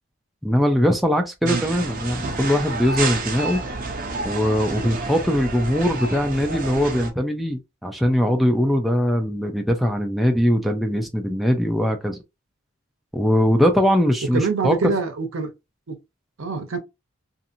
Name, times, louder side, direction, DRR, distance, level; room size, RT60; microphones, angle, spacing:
voice 1, 0.4-3.6 4.2-12.2 13.1-14.9, equal, ahead, 0.4 m, -21 dB
sound 1, 1.4-7.1, right 3 dB, 40° right, 0.6 m, -29 dB
voice 2, 14.3-15.5 15.9-16.0 16.4-16.8, right 4 dB, 80° right, 0.7 m, -25 dB
2.7 x 2.5 x 2.5 m
head